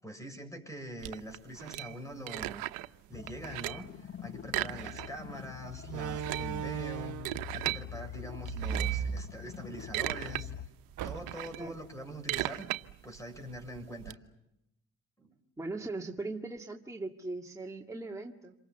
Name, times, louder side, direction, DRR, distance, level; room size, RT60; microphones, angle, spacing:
voice 1, 0.0-2.6 3.1-10.5 11.0-12.7 13.0-14.2 15.2-15.4, equal, 10° left, 7 dB, 6.8 m, -44 dB
sound 1, 1.0-3.0 3.3-3.9 4.4-5.4 5.6-5.7 6.0-7.8 8.5-9.1 9.6-10.4 10.8-14.1, right 18 dB, 85° right, 0.9 m, -37 dB
sound 2, 3.1-10.7, left 9 dB, 35° left, 0.9 m, -44 dB
Slam, 4.8-5.0 5.8-7.4 8.4-9.9 10.2-10.3 11.0-11.6, right 11 dB, 60° right, 1.2 m, -36 dB
voice 2, 15.6-18.6, right 2 dB, 10° right, 1 dB, 2.1 m, -39 dB
27.5 x 24.0 x 7.0 m, 0.84 s
cardioid pair, 85°, 33 cm